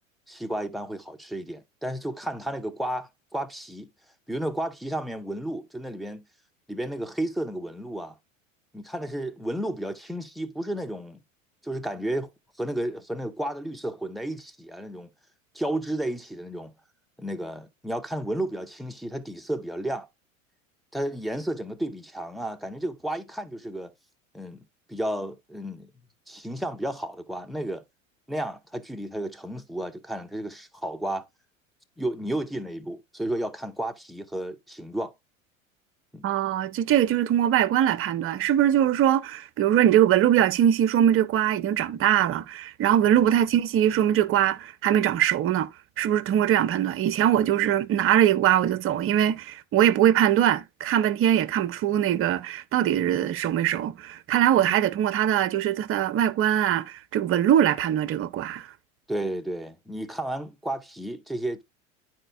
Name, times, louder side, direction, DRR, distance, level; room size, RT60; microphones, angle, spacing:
voice 1, 0.3-3.9 4.3-6.2 6.7-8.1 8.7-11.2 11.6-12.3 12.6-15.1 15.5-16.7 17.2-20.1 20.9-23.9 24.3-25.9 26.3-27.8 28.3-31.2 32.0-35.1 36.1-36.2 43.2-43.4 54.6-54.8 59.1-61.6, right 1 dB, ahead, 0.9 m, -32 dB
voice 2, 36.2-45.7 46.0-58.7, right 11 dB, 35° right, 0.8 m, -22 dB
12.5 x 4.4 x 2.3 m
figure-of-eight pair, 85°, 40 cm